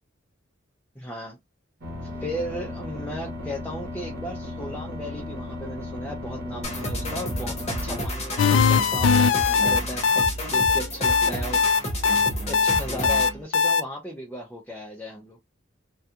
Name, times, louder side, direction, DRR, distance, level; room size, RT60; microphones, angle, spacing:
voice 1, 1.0-1.4 2.0-10.2 10.5-11.6 12.5-15.4, equal, 10° left, 0.5 m, -36 dB
sound 1, 1.8-8.0, left 2 dB, 50° right, 0.9 m, -36 dB
sound 2, 6.6-13.4, equal, 35° left, 0.9 m, -31 dB
sound 3, 8.4-13.8, left 5 dB, 70° left, 0.3 m, -20 dB
2.3 x 2.3 x 2.8 m
head